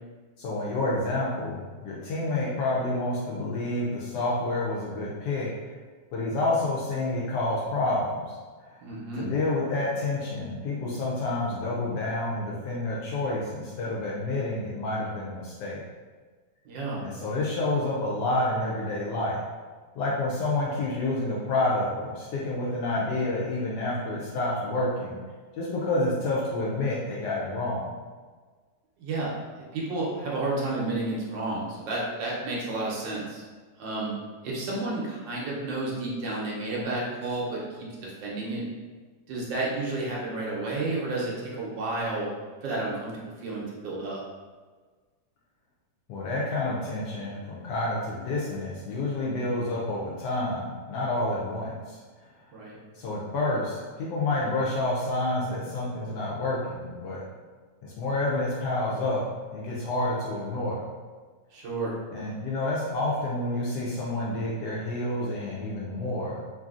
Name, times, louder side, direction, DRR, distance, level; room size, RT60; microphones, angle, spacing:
voice 1, 0.4-5.5 6.1-8.3 8.6-8.8 9.2-15.8 17.0-19.4 19.9-25.2 25.5-27.9 46.1-52.0 52.9-57.2 57.8-59.2 59.5-60.8 62.1-66.5, left 2 dB, 75° left, -5 dB, 1.1 m, -29 dB
voice 2, 8.8-9.3 16.6-17.0 29.0-29.3 29.7-33.4 33.8-34.1 34.4-38.6 39.3-42.3 42.6-44.2 52.5-52.8 61.5-61.9, right 2 dB, 85° right, -5 dB, 1.4 m, -31 dB
3.2 x 2.6 x 2.4 m, 1.4 s
omnidirectional pair, 1.9 m